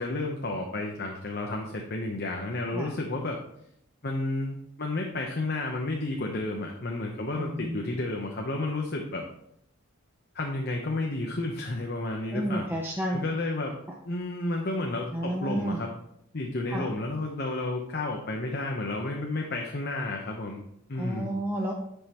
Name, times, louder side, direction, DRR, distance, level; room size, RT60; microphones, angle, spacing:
voice 1, 0.0-3.4 4.0-9.2 10.3-12.7 13.1-13.8 14.0-15.9 16.3-20.6 20.9-21.3, left 2 dB, 55° left, 1 dB, 0.9 m, -31 dB
voice 2, 7.4-7.8 12.3-13.3 15.1-15.8 16.7-16.9 21.0-21.7, right 1 dB, 10° right, -1 dB, 0.7 m, -31 dB
10.0 x 5.5 x 3.0 m, 0.73 s
head